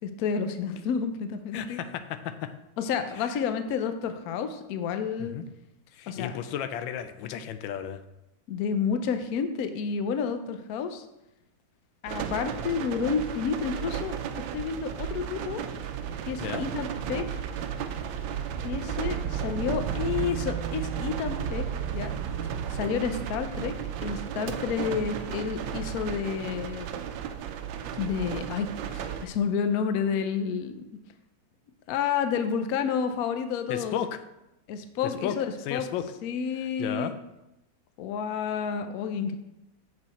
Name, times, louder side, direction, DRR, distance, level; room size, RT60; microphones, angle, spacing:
voice 1, 0.0-1.8 2.8-5.4 6.1-6.4 8.5-11.0 12.0-14.2 14.5-15.6 16.2-17.4 18.6-21.7 21.9-22.1 22.7-23.7 24.0-26.9 28.0-30.8 31.9-34.0 34.7-35.9 36.2-37.1 38.0-39.4, left 6 dB, 65° left, 8 dB, 1.0 m, -30 dB
voice 2, 1.5-1.9 2.2-2.3 5.2-5.4 5.9-8.0 16.4-16.6 33.7-34.1 35.2-35.4 35.7-36.1 36.8-37.1, left 9 dB, 90° left, 10 dB, 1.3 m, -33 dB
sound 1, 12.1-29.3, right 8 dB, 85° right, 1.4 m, -33 dB
6.7 x 6.3 x 4.2 m, 0.90 s
omnidirectional pair, 2.0 m